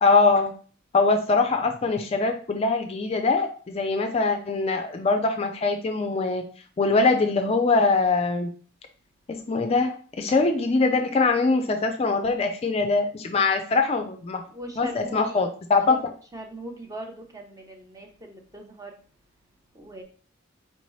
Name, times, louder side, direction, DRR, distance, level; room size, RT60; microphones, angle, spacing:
voice 1, 0.0-0.5 0.9-6.4 6.8-8.5 9.3-14.4 14.8-16.0, left 3 dB, 30° left, 5 dB, 0.3 m, -22 dB
voice 2, 14.5-15.2 15.9-16.0 16.3-19.0 19.8-20.0, right 1 dB, 20° right, 2 dB, 0.6 m, -40 dB
4.5 x 2.9 x 3.0 m, 0.41 s
head